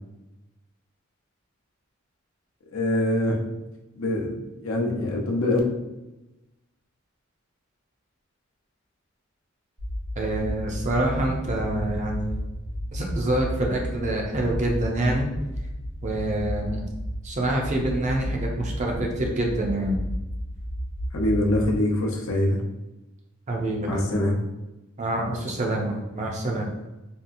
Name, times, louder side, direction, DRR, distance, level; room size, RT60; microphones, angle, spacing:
voice 1, 2.7-3.4 4.0-4.3 4.6-5.6 21.1-22.6 23.9-24.4, left 1 dB, 70° left, 0 dB, 0.6 m, -24 dB
sound 1, 9.8-21.8, equal, 60° right, 1.1 m, -33 dB
voice 2, 10.2-12.4 12.9-15.3 16.0-16.8 17.2-20.0 23.5-24.1 25.0-26.7, right 1 dB, 35° right, 0 dB, 0.5 m, -26 dB
2.8 x 2.4 x 2.5 m, 1.0 s
head